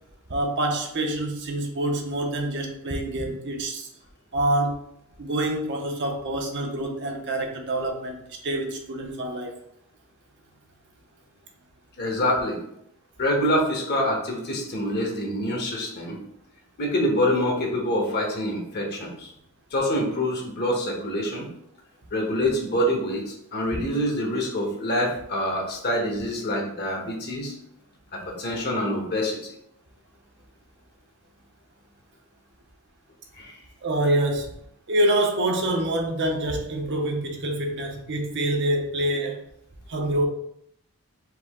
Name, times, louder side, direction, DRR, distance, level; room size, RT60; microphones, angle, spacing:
voice 1, 0.3-3.9 4.3-4.8 5.2-9.5 23.8-23.9 33.8-34.6 34.9-39.4 39.9-40.2, right 1 dB, 55° right, 2 dB, 0.7 m, -26 dB
voice 2, 12.0-12.6 13.2-16.2 16.8-19.3 19.7-21.5 22.1-23.2 23.5-27.5 28.1-29.5 33.4-33.5, left 1 dB, 50° left, 0 dB, 1.1 m, -26 dB
4.8 x 2.8 x 3.6 m, 0.75 s
head